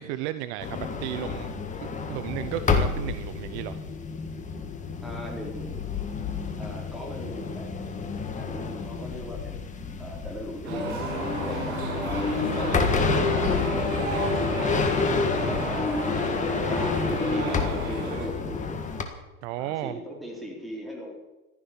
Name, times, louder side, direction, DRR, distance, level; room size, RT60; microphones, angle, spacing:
voice 1, 0.0-1.5 1.8-3.8 15.4-15.9 19.4-20.0, right 13 dB, 50° right, 12 dB, 0.9 m, -34 dB
sound 1, 0.6-19.0, left 5 dB, 15° left, 1.7 m, -29 dB
voice 2, 5.0-5.9 6.6-7.7 8.4-9.6 10.0-14.8 15.3-16.2 16.4-18.8 19.6-21.1, equal, ahead, -3 dB, 4.2 m, -38 dB
sound 2, 10.6-18.3, right 2 dB, 75° right, 6.3 m, -32 dB
15.0 x 12.5 x 7.0 m, 1.1 s
supercardioid pair, 145°, 43 cm